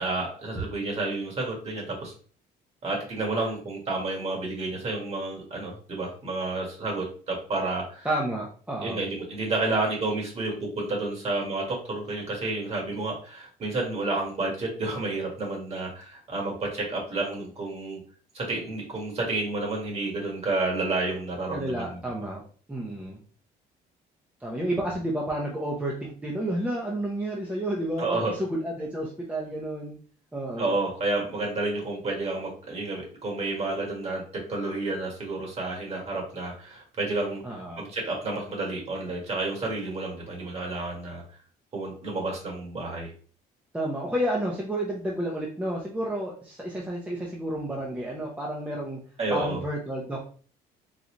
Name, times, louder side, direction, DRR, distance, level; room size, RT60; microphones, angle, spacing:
voice 1, 0.0-2.1 2.8-8.1 8.8-18.0 18.3-22.0 28.0-28.3 30.6-34.2 34.5-41.2 41.7-43.1 49.2-49.6, right 2 dB, 40° right, -2 dB, 1.7 m, -30 dB
voice 2, 8.0-9.0 21.5-22.4 22.7-23.2 24.4-30.0 30.3-30.7 37.4-37.9 43.7-49.0 49.3-50.3, right 1 dB, 10° right, -2 dB, 0.7 m, -31 dB
3.9 x 2.3 x 3.1 m, 0.42 s
cardioid pair, 110°, 17 cm